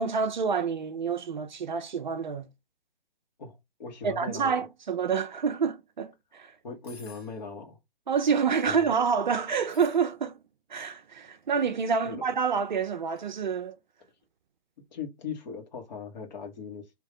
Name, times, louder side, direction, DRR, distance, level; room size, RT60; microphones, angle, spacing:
voice 1, 0.0-2.5 4.0-6.5 8.1-10.4 10.7-13.8, right 6 dB, 50° right, 0.6 m, -28 dB
voice 2, 3.4-4.6 6.6-7.8 8.7-8.9 12.0-12.2 14.9-16.9, left 5 dB, 45° left, 1.6 m, -39 dB
sound 1, 6.8-7.4 8.3-8.7 9.6-10.1 11.3-11.6 13.1-13.3, left 4 dB, 90° left, 1.8 m, -54 dB
3.6 x 3.0 x 3.7 m
figure-of-eight pair, 140°, 31 cm